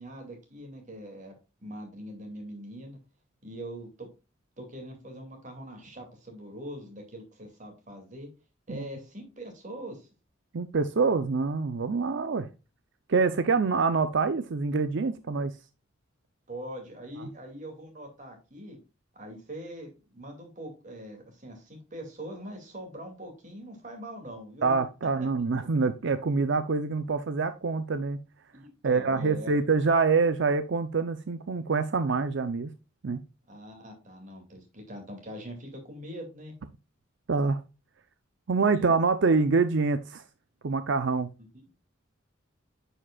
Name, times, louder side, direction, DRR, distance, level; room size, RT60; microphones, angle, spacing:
voice 1, 0.0-1.3 1.6-3.0 3.4-4.1 4.6-8.3 8.7-10.1 16.5-18.8 19.1-24.7 28.5-29.5 33.5-36.5 38.7-38.9, right 1 dB, 40° right, 2.3 m, -42 dB
voice 2, 10.5-12.5 13.1-15.6 17.2-17.3 24.6-28.2 28.8-32.7 33.0-33.2 37.3-37.6 38.5-40.2 40.6-41.3, right 4 dB, 65° right, 0.6 m, -26 dB
9.9 x 5.0 x 2.3 m
head